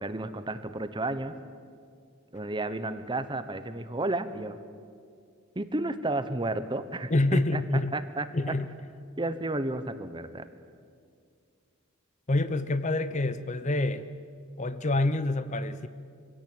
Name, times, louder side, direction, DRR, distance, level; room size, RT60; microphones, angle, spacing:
voice 1, 0.0-1.3 2.3-4.6 5.5-7.6 7.9-8.3 9.2-10.4, right 2 dB, 20° right, 11 dB, 1.0 m, -32 dB
voice 2, 7.1-7.9 8.3-8.7 12.3-14.1 14.6-15.9, left 2 dB, 35° left, 13 dB, 0.7 m, -27 dB
24.0 x 17.0 x 8.9 m, 2.2 s
head